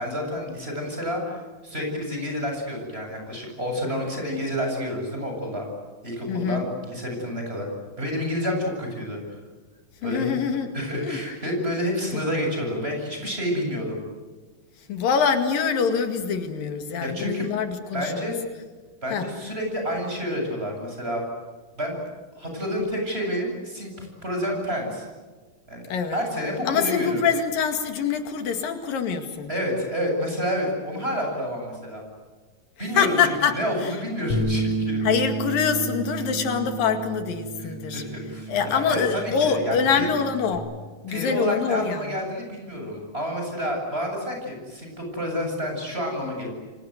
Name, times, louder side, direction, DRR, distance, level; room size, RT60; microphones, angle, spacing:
voice 1, 0.0-5.7 6.0-7.7 8.0-9.4 10.0-10.3 10.7-14.0 17.0-17.5 17.9-18.4 19.0-21.2 21.7-22.0 22.3-25.1 25.7-25.8 26.1-27.2 29.5-32.0 32.8-33.2 33.6-35.0 37.6-40.1 41.1-46.5, equal, 15° right, 2 dB, 8.2 m, -29 dB
voice 2, 6.3-6.7 10.0-10.7 11.0-11.2 12.1-12.2 14.8-18.3 19.1-19.3 25.9-26.2 26.7-29.5 32.9-33.9 35.0-38.0 38.5-40.7 41.0-42.2, left 6 dB, 80° left, 7 dB, 3.9 m, -25 dB
Bass guitar, 34.3-40.6, right 2 dB, 55° left, 6.7 m, -31 dB
29.0 x 24.5 x 8.1 m, 1.4 s
omnidirectional pair, 3.9 m